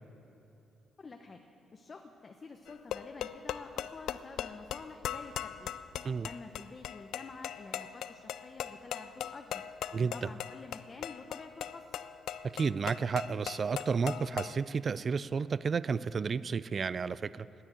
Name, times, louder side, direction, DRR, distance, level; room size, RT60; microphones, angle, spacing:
voice 1, 1.0-1.4 1.7-5.8 6.2-9.7 10.0-11.9, left 4 dB, 35° left, 4 dB, 0.8 m, -49 dB
sound 1, 2.7-14.6, left 10 dB, 75° left, 0.4 m, -40 dB
voice 2, 9.9-10.3 12.4-17.5, right 5 dB, 40° right, 17 dB, 0.3 m, -32 dB
10.5 x 9.9 x 9.0 m, 2.9 s
cardioid pair, 90°, 0 cm